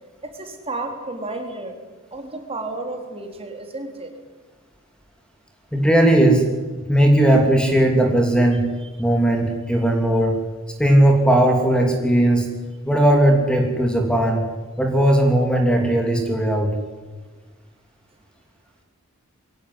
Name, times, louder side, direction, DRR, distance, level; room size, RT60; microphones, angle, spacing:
voice 1, 0.2-1.7 2.1-4.1 8.8-8.9 9.7-9.8, right 2 dB, 25° right, 4 dB, 3.9 m, -32 dB
voice 2, 5.7-6.4 6.9-8.7 9.0-10.4 10.8-12.5 12.8-14.4 14.8-16.7, right 1 dB, 5° left, 2 dB, 2.9 m, -17 dB
23.0 x 17.5 x 9.9 m, 1.4 s
head